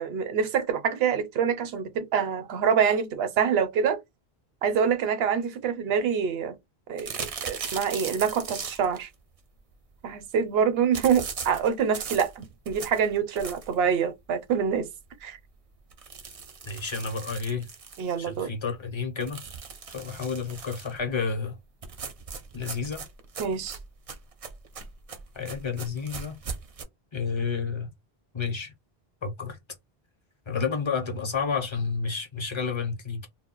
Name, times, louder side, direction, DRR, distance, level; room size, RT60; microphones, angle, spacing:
voice 1, 0.0-4.0 4.6-6.6 6.9-9.1 10.0-14.9 15.2-15.4 18.0-18.5 23.4-23.8, right 7 dB, 85° right, 0.8 m, -26 dB
sound 1, 7.0-9.0 10.9-13.8 14.3-14.4 14.7-14.8 15.1-15.2 15.9-18.4 19.2-21.0 21.8-26.8, right 5 dB, 50° right, 0.4 m, -39 dB
voice 2, 16.7-17.7 18.2-19.4 19.9-21.6 22.5-23.1 25.3-26.4 27.1-27.9 28.3-28.7 29.2-29.6 30.5-33.3, left 5 dB, 35° left, 0.6 m, -30 dB
2.1 x 2.0 x 3.7 m
omnidirectional pair, 1.0 m